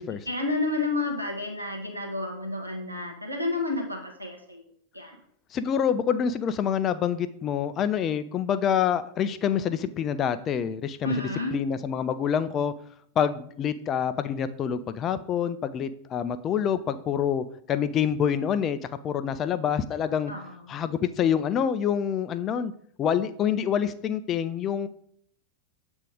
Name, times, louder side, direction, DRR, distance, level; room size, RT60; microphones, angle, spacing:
voice 1, 0.3-4.6 4.9-5.2 11.0-11.6 20.3-20.5, left 2 dB, 85° right, 1 dB, 1.4 m, -30 dB
voice 2, 5.5-12.7 13.2-18.8 19.0-20.3 20.7-22.7 23.0-24.9, left 8 dB, 30° left, 12 dB, 0.4 m, -26 dB
7.5 x 3.5 x 5.0 m, 0.63 s
figure-of-eight pair, 90°, 0 cm